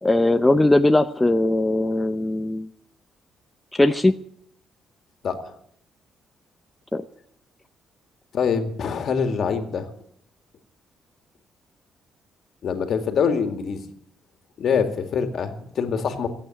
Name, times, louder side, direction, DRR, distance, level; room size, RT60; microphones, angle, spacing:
voice 1, 0.0-2.7 3.7-4.2 6.9-7.0, left 1 dB, 10° left, 8 dB, 0.7 m, -19 dB
voice 2, 8.3-9.9 12.6-13.8 14.6-16.3, left 6 dB, 60° left, 7 dB, 2.1 m, -24 dB
16.5 x 8.6 x 9.0 m, 0.69 s
cardioid pair, 90°, 0 cm